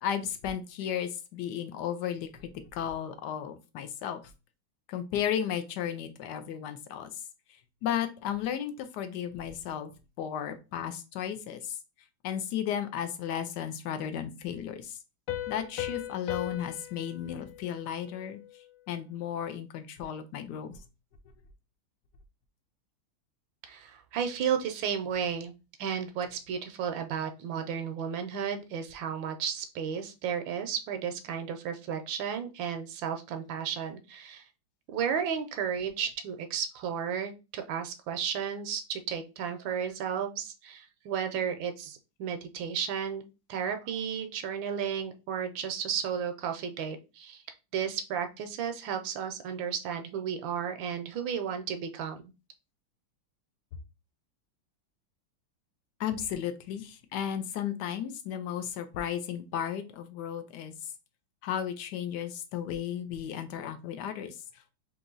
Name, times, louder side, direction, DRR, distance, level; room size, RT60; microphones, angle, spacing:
voice 1, 0.0-4.2 4.9-7.1 7.8-9.9 10.2-11.8 12.2-15.0 15.5-18.4 18.9-20.8 56.0-60.7 61.4-64.3, left 9 dB, 70° left, 9 dB, 1.0 m, -34 dB
Piano, 15.3-18.7, left 12 dB, 90° left, 1.5 m, -38 dB
voice 2, 23.6-25.5 25.8-34.4 34.9-43.2 43.5-47.4 47.7-52.2, right 7 dB, 75° right, 7 dB, 1.3 m, -33 dB
3.8 x 2.9 x 3.8 m, 0.29 s
omnidirectional pair, 2.3 m